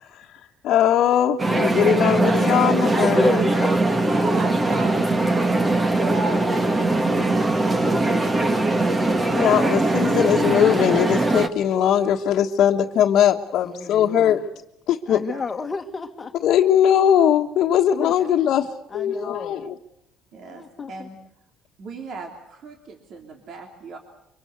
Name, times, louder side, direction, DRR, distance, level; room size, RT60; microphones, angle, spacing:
voice 1, 0.0-0.6 4.3-8.6 15.1-15.4 18.2-18.4 20.3-21.2 21.8-24.0, right 4 dB, 50° right, 4 dB, 2.9 m, -41 dB
voice 2, 0.6-3.5 9.0-14.4 14.9-15.2 16.4-19.8, left 10 dB, 60° left, -1 dB, 1.4 m, -20 dB
sound 1, 1.4-11.5, right 2 dB, 20° right, 1.7 m, -20 dB
voice 3, 3.2-4.2 13.6-14.4 15.1-16.3 18.0-18.1 18.9-19.6 20.4-21.1, left 4 dB, 25° left, 7 dB, 1.8 m, -34 dB
24.5 x 24.0 x 8.0 m, 0.78 s
cardioid pair, 120°, 0 cm